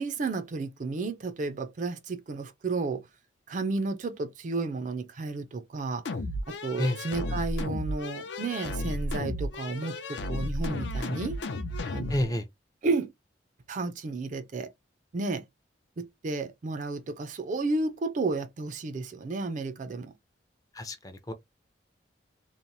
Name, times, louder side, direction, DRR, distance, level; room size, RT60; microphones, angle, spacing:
voice 1, 0.0-3.1 3.5-6.0 6.5-11.4 11.9-12.4 12.8-13.1 13.7-14.7 15.1-15.4 16.0-20.1, right 3 dB, 40° right, 0.4 m, -32 dB
sound 1, 6.1-12.2, left 1 dB, 70° left, 0.5 m, -33 dB
voice 2, 12.1-12.4 20.7-21.3, left 1 dB, 20° left, 0.4 m, -29 dB
2.9 x 2.0 x 2.6 m
head